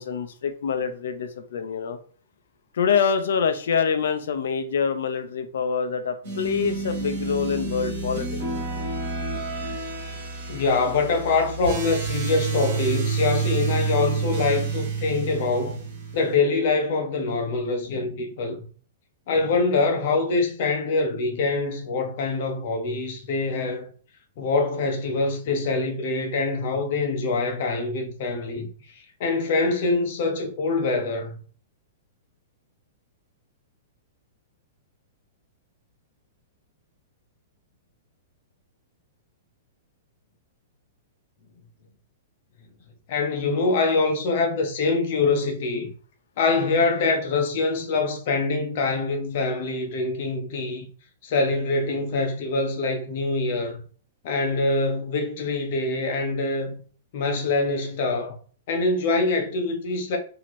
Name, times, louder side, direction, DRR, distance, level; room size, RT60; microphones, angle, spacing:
voice 1, 0.0-2.0 2.7-8.4, left 6 dB, 75° left, 0.6 m, -25 dB
sound 1, 6.2-16.3, right 4 dB, 50° right, 1.6 m, -29 dB
voice 2, 10.5-15.9 16.1-18.7 19.3-23.9 24.4-28.7 29.2-31.4 43.1-45.9 46.4-50.9 51.2-53.8 54.2-56.8 57.1-58.4 58.7-60.2, left 3 dB, 45° left, 0.9 m, -24 dB
4.3 x 2.8 x 3.0 m
hypercardioid pair, 175°, 0 cm